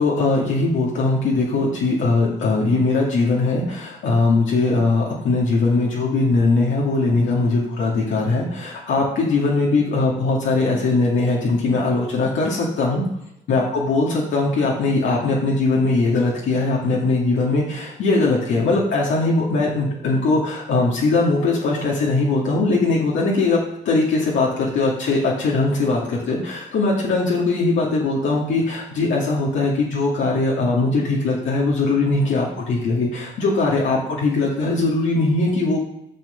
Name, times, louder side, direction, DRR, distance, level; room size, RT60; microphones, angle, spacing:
voice 1, 0.0-13.0 13.5-23.6 23.8-35.8, left 3 dB, 75° left, -4 dB, 2.3 m, -20 dB
9.1 x 6.1 x 5.8 m, 0.81 s
cardioid pair, 90°, 20 cm